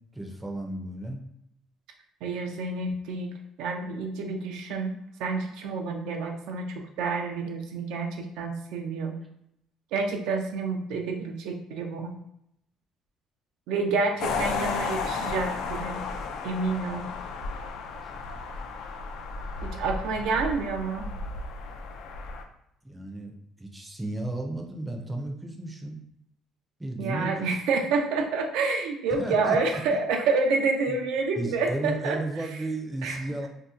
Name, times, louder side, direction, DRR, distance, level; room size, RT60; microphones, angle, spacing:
voice 1, 0.1-1.2 18.0-18.7 19.7-19.9 22.8-26.0 26.8-27.6 29.2-30.0 30.9-31.0 31.4-33.5, right 2 dB, 10° right, 2 dB, 0.5 m, -34 dB
voice 2, 2.2-3.3 3.6-4.9 5.2-9.1 9.9-12.1 13.7-16.0 16.4-17.1 19.6-21.1 27.0-32.2 33.0-33.2, right 4 dB, 80° right, 3 dB, 0.5 m, -28 dB
sound 1, 14.2-22.4, left 4 dB, 70° left, 0.4 m, -33 dB
2.7 x 2.1 x 3.6 m, 0.77 s
cardioid pair, 115°, 0 cm